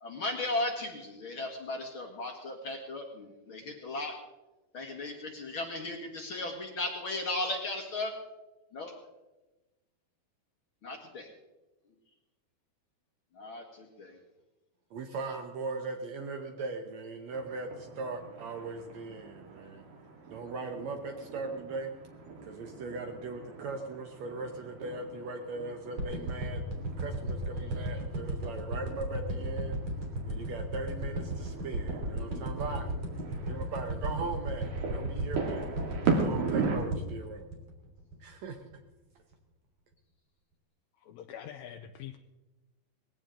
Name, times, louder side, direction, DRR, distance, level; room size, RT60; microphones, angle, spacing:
voice 1, 0.0-4.2 4.7-8.1 8.7-9.0 10.8-11.3 13.3-14.2, left 2 dB, 50° left, 2 dB, 1.7 m, -36 dB
voice 2, 14.9-19.8 20.3-21.9 22.4-26.6 27.0-29.8 30.2-32.9 33.4-35.7 36.1-37.4 38.2-38.6, right 3 dB, 85° right, 4 dB, 1.5 m, -39 dB
sound 1, 17.3-36.8, right 4 dB, 70° right, 4.4 m, -39 dB
sound 2, 26.0-38.3 38.7-38.8, right 1 dB, 40° right, 4.0 m, -35 dB
voice 3, 41.0-42.2, left 10 dB, 80° left, 6 dB, 2.2 m, -44 dB
20.0 x 16.5 x 3.8 m, 1.1 s
omnidirectional pair, 4.6 m